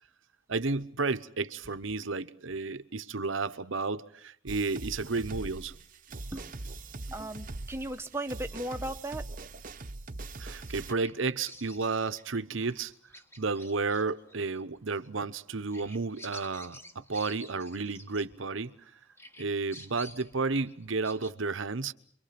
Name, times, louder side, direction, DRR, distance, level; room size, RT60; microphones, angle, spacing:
voice 1, 0.5-5.7 10.4-12.9 13.4-18.7 19.4-21.9, right 4 dB, 70° right, 1.0 m, -32 dB
sound 1, 4.5-10.9, right 2 dB, 40° right, 1.0 m, -42 dB
voice 2, 7.1-9.2, right 1 dB, 10° right, 1.0 m, -36 dB
Bird vocalization bird call bird song, 10.4-18.8 19.2-21.3, equal, 10° left, 1.4 m, -51 dB
29.5 x 24.0 x 5.9 m
head